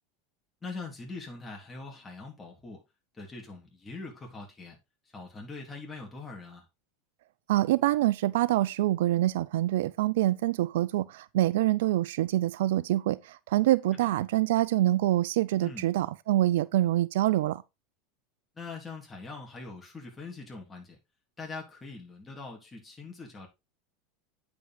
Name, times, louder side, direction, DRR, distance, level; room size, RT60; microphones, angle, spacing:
voice 1, 0.6-2.8 3.1-4.8 5.1-6.7 15.6-15.9 18.6-21.0 21.4-23.5, left 3 dB, 15° left, 3.6 m, -42 dB
voice 2, 7.5-17.6, right 15 dB, 75° right, 0.4 m, -25 dB
9.2 x 5.2 x 4.0 m
hypercardioid pair, 105°, 0 cm